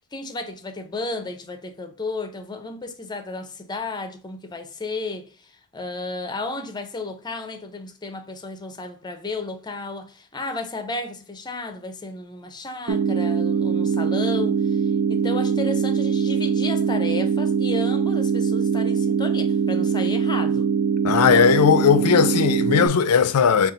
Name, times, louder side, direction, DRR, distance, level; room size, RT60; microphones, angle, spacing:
voice 1, 0.1-5.3 5.7-14.8 15.1-20.7, left 3 dB, 20° left, 0.5 m, -33 dB
sound 1, 12.9-22.9, right 6 dB, 75° right, 0.4 m, -22 dB
voice 2, 21.0-23.7, left 7 dB, 85° left, 0.4 m, -17 dB
4.1 x 2.4 x 3.7 m
head